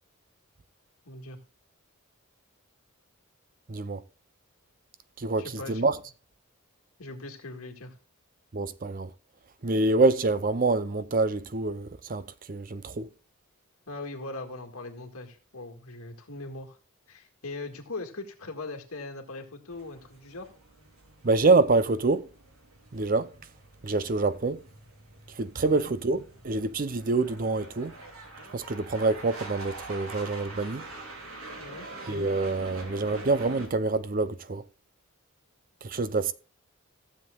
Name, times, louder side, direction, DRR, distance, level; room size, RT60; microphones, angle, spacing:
voice 1, 1.1-1.4 5.4-5.9 7.0-8.0 13.9-16.8 17.1-20.5 25.6-25.9 31.6-31.9, left 2 dB, 85° left, 1.9 m, -40 dB
voice 2, 3.7-4.0 5.2-6.0 8.5-9.1 9.6-13.1 21.2-22.3 22.9-23.3 23.8-24.6 25.4-27.9 28.5-30.8 32.1-34.6 35.8-36.3, right 3 dB, 40° right, 0.6 m, -26 dB
sound 1, 19.7-33.7, right 2 dB, 75° right, 2.7 m, -45 dB
15.5 x 7.4 x 2.4 m
head